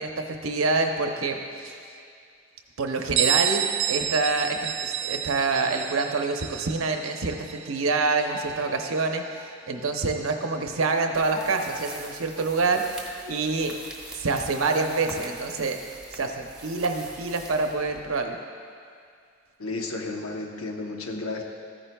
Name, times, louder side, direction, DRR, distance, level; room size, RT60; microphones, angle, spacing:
voice 1, 0.0-1.8 2.8-13.7 14.1-15.8 16.1-18.4, right 3 dB, 75° right, 4 dB, 0.8 m, -26 dB
Bell, 3.2-8.7, right 10 dB, 60° right, 0.4 m, -29 dB
sound 1, 6.8-13.6, left 1 dB, 45° left, 1.3 m, -47 dB
Walking on leaves, 11.1-18.3, right 1 dB, 5° right, 0.9 m, -44 dB
voice 2, 19.6-21.4, left 2 dB, 85° left, 2 dB, 0.9 m, -32 dB
14.0 x 10.0 x 2.3 m, 2.3 s
head